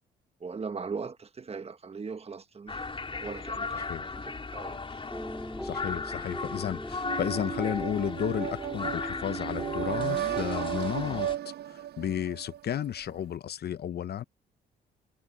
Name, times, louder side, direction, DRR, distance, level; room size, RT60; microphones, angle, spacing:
voice 1, 0.4-2.9 3.2-5.0, right 5 dB, 30° right, 1.2 m, -39 dB
sound 1, 2.7-11.4, left 4 dB, 25° left, 4.3 m, -37 dB
voice 2, 3.7-4.0 5.6-14.2, left 10 dB, 55° left, 0.7 m, -33 dB
sound 2, 5.1-10.6, equal, ahead, 3.3 m, -40 dB
sound 3, 7.0-12.8, right 12 dB, 55° right, 0.5 m, -35 dB
cardioid pair, 90°, 20 cm